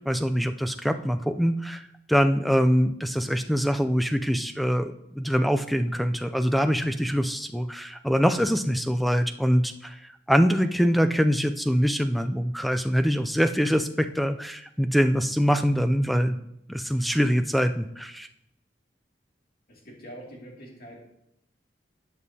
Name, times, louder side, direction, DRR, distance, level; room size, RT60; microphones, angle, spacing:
voice 1, 0.1-1.8 2.1-16.4 16.7-18.3, equal, ahead, 8 dB, 0.3 m, -24 dB
voice 2, 19.7-21.0, right 1 dB, 55° left, -2 dB, 2.4 m, -44 dB
12.5 x 8.2 x 2.8 m, 0.79 s
head